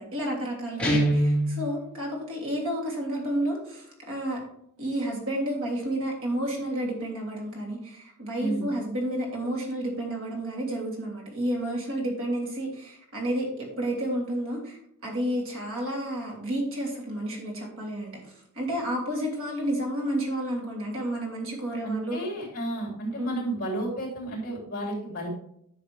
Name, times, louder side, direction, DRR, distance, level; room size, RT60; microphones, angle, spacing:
voice 1, 0.0-4.4 4.8-22.2 23.2-23.4, right 1 dB, 65° right, -1 dB, 2.9 m, -31 dB
Guitar, 0.8-1.6, right 1 dB, 5° left, 2.1 m, -22 dB
voice 2, 21.8-25.3, right 1 dB, 40° left, -2 dB, 3.3 m, -32 dB
10.5 x 6.6 x 3.4 m, 0.72 s
head